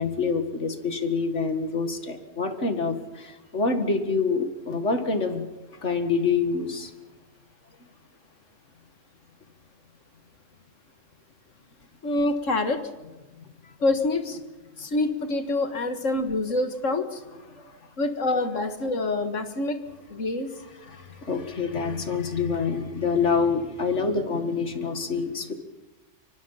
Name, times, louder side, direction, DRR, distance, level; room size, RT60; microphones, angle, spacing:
voice 1, 0.0-5.5 5.8-6.9 17.5-17.6 20.9-25.5, left 4 dB, 65° left, 7 dB, 2.2 m, -26 dB
voice 2, 12.0-12.9 13.8-14.4 14.8-17.2 18.0-19.8 20.1-20.5, left 2 dB, 85° left, 8 dB, 2.0 m, -26 dB
24.5 x 24.5 x 5.7 m, 1.1 s
omnidirectional pair, 1.3 m